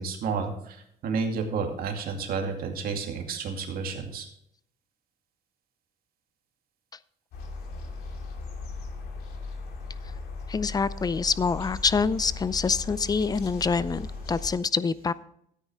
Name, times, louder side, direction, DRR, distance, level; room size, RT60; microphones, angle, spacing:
voice 1, 0.0-4.3, right 5 dB, 60° right, 3 dB, 2.4 m, -31 dB
sound 1, 7.3-14.5, left 3 dB, 70° left, 2.9 m, -37 dB
voice 2, 10.5-15.1, left 5 dB, 25° left, 17 dB, 0.5 m, -26 dB
13.5 x 9.3 x 3.6 m, 0.72 s
cardioid pair, 110°, 17 cm